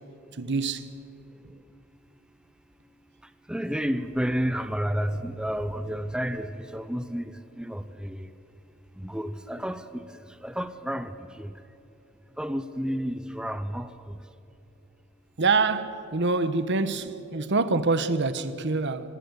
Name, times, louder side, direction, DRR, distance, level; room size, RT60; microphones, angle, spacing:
voice 1, 0.3-0.9 15.4-19.2, right 3 dB, 60° right, 1.2 m, -25 dB
voice 2, 3.2-8.3 8.9-11.7 12.3-14.3, equal, 5° right, 0.7 m, -31 dB
26.0 x 19.0 x 8.2 m
head